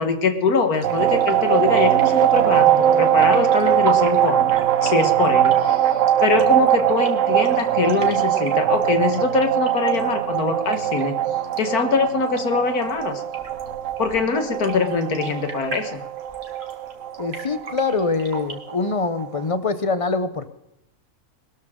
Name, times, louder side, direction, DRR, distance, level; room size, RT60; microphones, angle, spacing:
voice 1, 0.0-11.1 11.6-13.2 14.0-16.0, left 5 dB, 75° left, 7 dB, 2.0 m, -23 dB
sound 1, 0.7-18.5, right 3 dB, 45° right, 2.3 m, -40 dB
sound 2, 0.8-19.4, right 10 dB, 65° right, 0.9 m, -21 dB
voice 2, 17.2-20.5, left 4 dB, 30° left, 12 dB, 0.7 m, -24 dB
21.0 x 13.5 x 3.8 m, 0.85 s
omnidirectional pair, 1.6 m